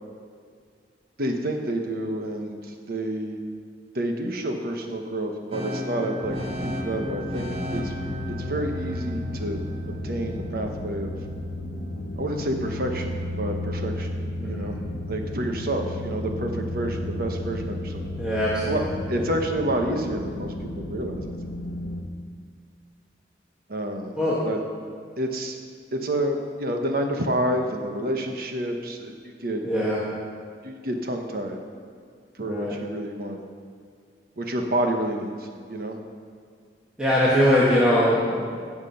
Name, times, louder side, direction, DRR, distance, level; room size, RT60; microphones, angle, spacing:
voice 1, 1.2-3.4 3.9-7.9 8.3-11.1 12.2-14.1 14.5-14.8 15.1-18.0 18.7-18.8 19.1-21.3 23.7-24.1 24.4-24.6 25.2-25.6 25.9-29.1 29.4-29.6 30.6-31.6 32.4-33.4 34.4-36.0, right 1 dB, 55° right, 3 dB, 1.2 m, -29 dB
sound 1, 5.5-11.4, equal, 35° right, 1.0 m, -35 dB
sound 2, 6.2-22.0, left 1 dB, 75° left, 1.1 m, -33 dB
voice 2, 14.4-14.7 18.2-19.3 24.2-24.4 29.6-30.0 32.4-32.7 37.0-38.4, equal, 5° right, -8 dB, 1.6 m, -22 dB
16.0 x 6.1 x 5.8 m, 2.1 s
head